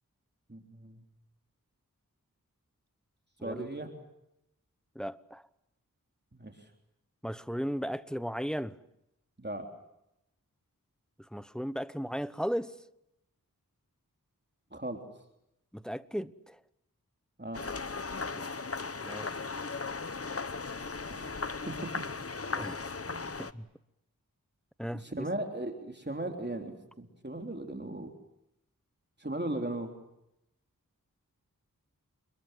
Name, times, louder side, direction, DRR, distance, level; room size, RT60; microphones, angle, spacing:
voice 1, 0.5-1.0 3.4-3.9 6.3-6.6 9.4-9.7 14.7-15.0 17.4-17.6 21.1-21.9 23.1-23.2 25.0-28.1 29.2-29.9, right 1 dB, 30° right, 3.6 m, -37 dB
voice 2, 4.9-5.4 7.2-8.8 11.2-12.8 15.7-16.6 18.3-18.5 19.0-19.3 22.5-22.9 23.4-23.7 24.8-25.3, equal, ahead, 1.0 m, -36 dB
sound 1, 17.5-23.5, left 4 dB, 40° left, 1.0 m, -37 dB
28.0 x 22.0 x 7.7 m
wide cardioid pair, 50°, 34 cm